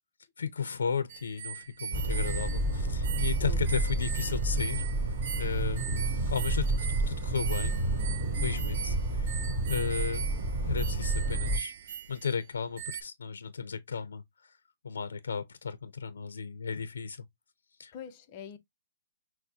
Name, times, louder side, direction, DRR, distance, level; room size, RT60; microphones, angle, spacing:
voice 1, 0.4-4.8 5.3-5.9 6.3-7.8 8.3-9.3 9.6-14.6 14.8-17.3 17.8-17.9, left 6 dB, 90° left, 0.6 m, -35 dB
sound 1, 1.1-12.5 12.8-13.0, right 8 dB, 40° right, 0.5 m, -41 dB
sound 2, 1.9-11.6, right 2 dB, 25° right, 1.9 m, -30 dB
voice 2, 8.5-9.0 17.9-18.6, left 8 dB, 25° left, 0.6 m, -45 dB
6.4 x 2.1 x 2.8 m
hypercardioid pair, 175°, 0 cm